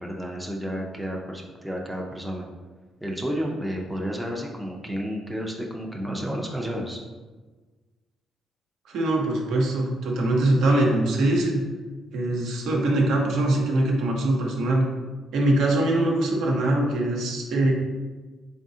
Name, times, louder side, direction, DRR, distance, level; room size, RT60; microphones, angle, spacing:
voice 1, 0.0-2.5 3.0-7.0, equal, 5° right, -1 dB, 0.5 m, -31 dB
voice 2, 8.9-11.6 12.1-14.9 15.3-17.7, right 1 dB, 80° right, -1 dB, 0.8 m, -22 dB
4.0 x 3.6 x 2.7 m, 1.3 s
cardioid pair, 140°, 0 cm